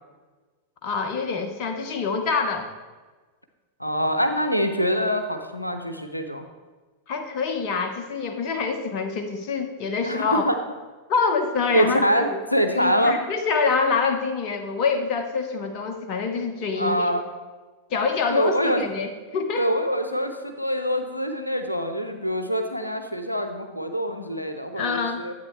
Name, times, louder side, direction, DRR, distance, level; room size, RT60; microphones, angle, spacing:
voice 1, 0.8-2.7 7.1-10.4 11.1-12.4 12.8-17.1 17.9-19.6 24.8-25.3, left 5 dB, 40° left, 6 dB, 1.1 m, -26 dB
voice 2, 3.8-6.4 10.0-10.6 11.7-13.2 16.8-17.2 18.3-18.8 19.6-25.3, equal, 85° left, 7 dB, 0.7 m, -24 dB
12.0 x 8.5 x 3.2 m, 1.3 s
figure-of-eight pair, 90°, 0 cm